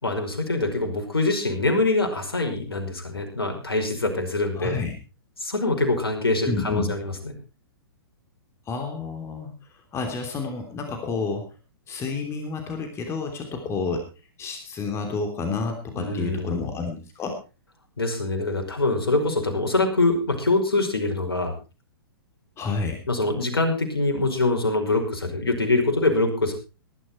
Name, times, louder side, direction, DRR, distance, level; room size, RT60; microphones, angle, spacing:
voice 1, 0.0-4.8 5.4-7.0 16.0-16.6 18.0-21.5 23.1-26.5, left 2 dB, 80° left, 4 dB, 5.3 m, -24 dB
voice 2, 4.6-4.9 6.4-6.9 8.7-9.5 9.9-11.5 11.9-14.1 14.4-17.4 22.6-23.0, left 4 dB, 20° left, 5 dB, 3.1 m, -29 dB
19.0 x 11.5 x 4.4 m, 0.32 s
figure-of-eight pair, 115°, 13 cm